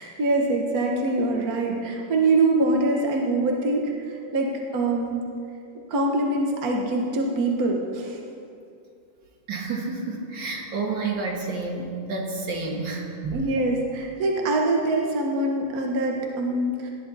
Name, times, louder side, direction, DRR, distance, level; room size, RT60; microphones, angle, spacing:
voice 1, 0.0-5.2 5.9-8.2 13.3-16.9, right 2 dB, 50° right, 0 dB, 1.6 m, -24 dB
voice 2, 9.5-13.4, right 3 dB, 65° right, 0 dB, 2.2 m, -30 dB
18.5 x 11.0 x 4.1 m, 2.4 s
omnidirectional pair, 2.2 m